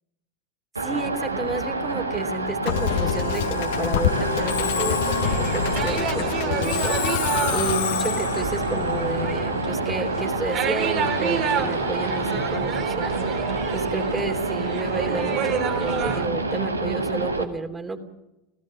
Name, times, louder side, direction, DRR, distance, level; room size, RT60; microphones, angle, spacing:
voice 1, 0.8-18.0, right 3 dB, 15° right, 5 dB, 2.9 m, -31 dB
sound 1, 0.8-17.4, right 3 dB, 85° right, 1.7 m, -28 dB
Musical instrument, 2.7-10.0, left 10 dB, 60° left, 1.5 m, -27 dB
sound 2, 5.2-16.3, right 7 dB, 45° right, 3.1 m, -30 dB
29.0 x 17.0 x 6.4 m, 0.96 s
figure-of-eight pair, 85°, 0 cm